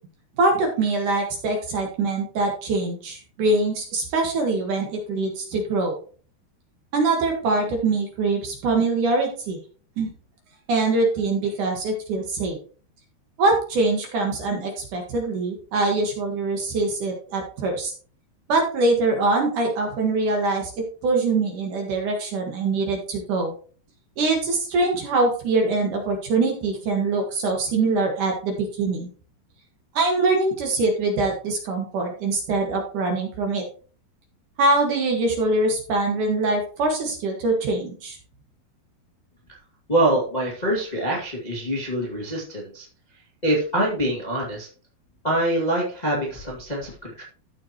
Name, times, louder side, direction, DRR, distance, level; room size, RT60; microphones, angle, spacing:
voice 1, 0.4-6.0 6.9-9.6 10.0-10.1 10.7-12.6 13.4-17.9 18.5-20.7 21.0-23.5 24.2-29.1 29.9-33.6 34.6-38.2, right 3 dB, 60° right, 2 dB, 2.7 m, -23 dB
voice 2, 39.9-42.8 43.4-44.7 45.2-47.2, right 1 dB, 15° left, -4 dB, 1.3 m, -24 dB
14.0 x 6.4 x 3.0 m, 0.41 s
omnidirectional pair, 4.8 m